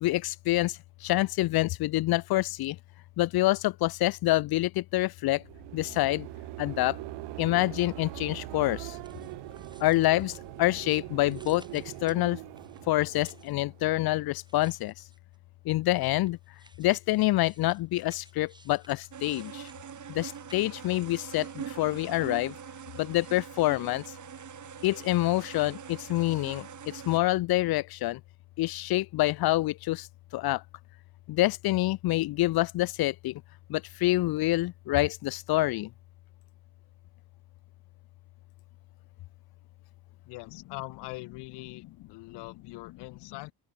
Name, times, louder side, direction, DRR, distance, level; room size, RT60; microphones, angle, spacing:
voice 1, 0.0-2.8 3.2-5.4 5.7-6.3 6.6-7.0 7.4-9.0 9.8-12.4 12.9-14.9 15.7-16.4 16.8-19.7 20.1-22.5 23.0-24.0 24.8-28.2 28.6-30.1 30.3-30.6 31.3-33.4 33.7-35.9, left 17 dB, 65° left, 0.6 m, -27 dB
sound 1, 5.3-14.3, right 20 dB, 85° right, 1.5 m, -42 dB
sound 2, 8.8-10.9 11.2-13.6 14.3-15.4 15.9-20.9 21.6-22.3, right 2 dB, 10° right, 7.9 m, -59 dB
sound 3, 19.1-27.2, right 8 dB, 45° right, 3.3 m, -43 dB
voice 2, 40.3-41.8 42.1-43.5, left 22 dB, 85° left, 0.8 m, -42 dB
open air
cardioid pair, 105°, 40 cm